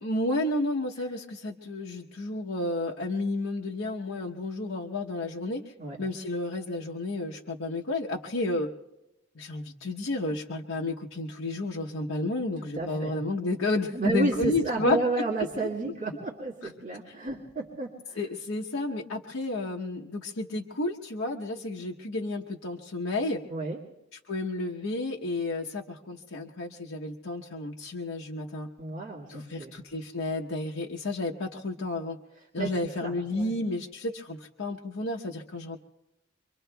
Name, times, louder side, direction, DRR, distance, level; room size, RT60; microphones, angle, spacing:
voice 1, 0.0-5.6 6.0-8.7 9.3-15.0 17.1-17.2 18.2-23.4 24.3-28.7 29.3-32.2 32.5-35.8, left 2 dB, 70° left, -1 dB, 0.9 m, -31 dB
voice 2, 12.7-13.1 13.9-18.2 23.5-23.8 28.8-29.8 32.6-32.7 33.0-33.5, right 3 dB, 35° right, -4 dB, 1.8 m, -31 dB
27.0 x 23.5 x 2.3 m, 0.92 s
head